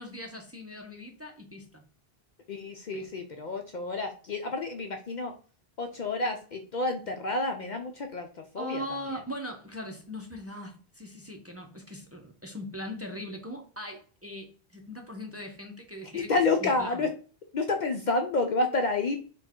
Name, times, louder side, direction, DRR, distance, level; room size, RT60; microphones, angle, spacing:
voice 1, 0.0-1.8 2.9-3.1 8.6-16.3 16.6-17.0, equal, 15° right, 1 dB, 0.7 m, -40 dB
voice 2, 2.5-5.3 5.8-8.3 8.5-8.8 16.1-17.1 17.5-19.2, left 3 dB, 55° left, 4 dB, 0.6 m, -29 dB
4.4 x 2.4 x 4.3 m, 0.40 s
omnidirectional pair, 1.0 m